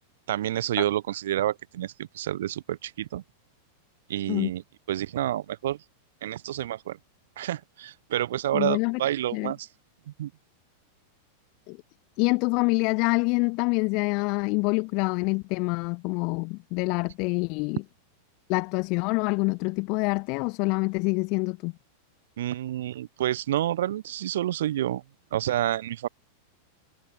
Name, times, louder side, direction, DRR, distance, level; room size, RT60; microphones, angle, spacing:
voice 1, 0.3-3.2 4.1-4.6 4.9-5.8 6.2-7.0 7.4-9.7 10.2-10.3 22.4-25.0 25.3-26.1, right 12 dB, 60° right, 0.3 m, -29 dB
voice 2, 8.5-9.0 9.3-9.5 11.7-11.8 12.2-17.8 18.5-21.7, left 31 dB, 45° left, 1.0 m, -26 dB
figure-of-eight pair, 90°, 0 cm